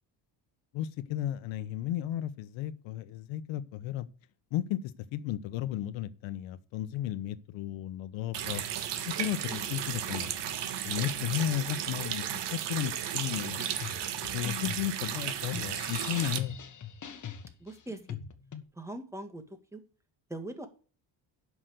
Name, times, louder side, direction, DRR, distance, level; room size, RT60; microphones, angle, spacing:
voice 1, 0.7-4.1 4.5-4.8 5.1-8.6 9.1-10.3 10.8-12.2 12.5-13.6 14.3-16.6, left 12 dB, 90° left, 1.0 m, -34 dB
Water tap faucet, 8.3-16.4, right 10 dB, 65° right, 1.5 m, -34 dB
voice 2, 9.5-9.8 17.6-18.2 18.8-19.4 19.7-19.8 20.3-20.7, right 2 dB, 5° right, 1.9 m, -41 dB
sound 1, 13.2-18.6, left 8 dB, 40° left, 1.6 m, -42 dB
7.8 x 6.2 x 7.9 m
cardioid pair, 110°, 44 cm